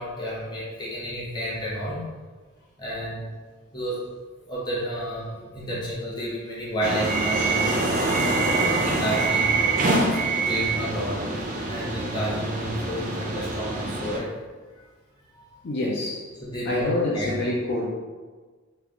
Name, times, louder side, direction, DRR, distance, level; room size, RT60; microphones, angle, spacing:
voice 1, 0.0-2.1 2.8-3.3 3.7-4.1 4.5-7.8 8.8-11.3 11.7-14.3 14.8-14.9 15.3-15.6 16.4-16.9 17.1-17.4, equal, 20° left, -7 dB, 0.9 m, -31 dB
sound 1, 6.8-14.2, right 3 dB, 40° right, 0.4 m, -25 dB
voice 2, 8.2-8.6 15.6-16.3 16.6-17.9, left 2 dB, 55° left, -4 dB, 0.4 m, -27 dB
3.3 x 2.3 x 3.6 m, 1.4 s
head